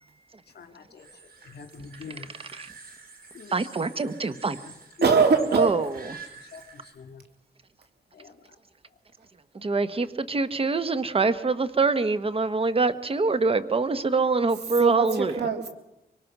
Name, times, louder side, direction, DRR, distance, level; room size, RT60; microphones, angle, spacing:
voice 1, 0.5-1.1 1.4-2.3 3.3-3.5 5.0-5.1 6.5-6.6 7.0-7.2 8.1-8.3, left 5 dB, 75° left, 7 dB, 2.2 m, -43 dB
sound 1, 1.0-6.9, right 4 dB, 60° right, 4.8 m, -48 dB
voice 2, 3.5-4.6 5.5-5.9 9.6-15.3, right 3 dB, 35° right, 12 dB, 1.2 m, -24 dB
voice 3, 5.0-5.8 14.8-15.7, right 5 dB, 80° right, 5 dB, 3.4 m, -22 dB
24.5 x 24.5 x 6.1 m, 0.90 s
wide cardioid pair, 125°, 17 cm